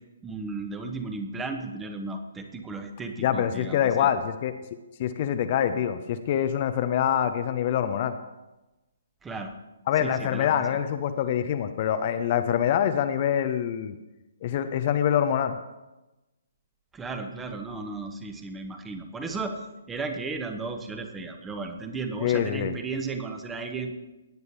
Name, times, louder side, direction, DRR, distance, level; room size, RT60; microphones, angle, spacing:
voice 1, 0.2-4.1 9.2-9.6 10.0-10.6 16.9-23.9, right 3 dB, 10° right, 5 dB, 1.1 m, -35 dB
voice 2, 3.2-4.5 5.0-8.1 9.9-13.9 14.4-15.6 22.2-22.7, left 9 dB, 35° left, 9 dB, 0.6 m, -25 dB
17.5 x 9.4 x 2.9 m, 1.0 s
figure-of-eight pair, 130°, 0 cm